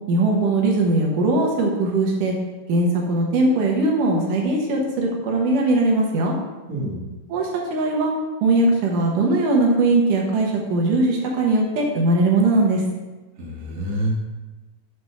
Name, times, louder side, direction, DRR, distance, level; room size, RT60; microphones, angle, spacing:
voice 1, 0.1-2.3 2.7-6.3 7.3-8.1 8.4-12.8, right 2 dB, 75° right, 0 dB, 2.7 m, -20 dB
voice 2, 6.7-7.1 13.4-14.2, equal, 35° right, -4 dB, 1.8 m, -27 dB
8.3 x 4.6 x 5.6 m, 1.2 s
omnidirectional pair, 3.8 m